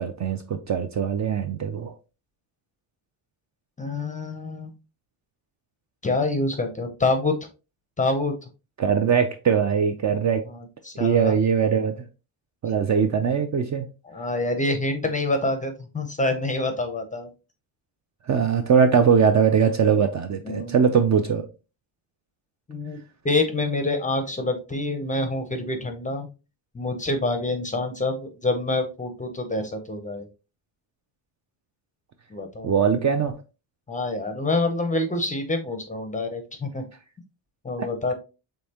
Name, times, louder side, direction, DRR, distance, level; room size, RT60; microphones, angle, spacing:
voice 1, 0.0-1.9 8.8-10.4 11.0-12.0 12.6-13.9 18.3-21.5 32.6-33.4 37.8-37.9, right 7 dB, 40° right, 0.4 m, -21 dB
voice 2, 3.8-4.7 6.0-7.3 8.0-8.3 10.5-11.3 14.0-17.3 20.4-20.8 22.7-23.0 23.2-26.3 26.7-30.3 32.3-32.7 33.9-36.8 37.6-38.1, left 2 dB, 15° left, 0.5 m, -26 dB
5.3 x 3.5 x 2.8 m
cardioid pair, 165°, 49 cm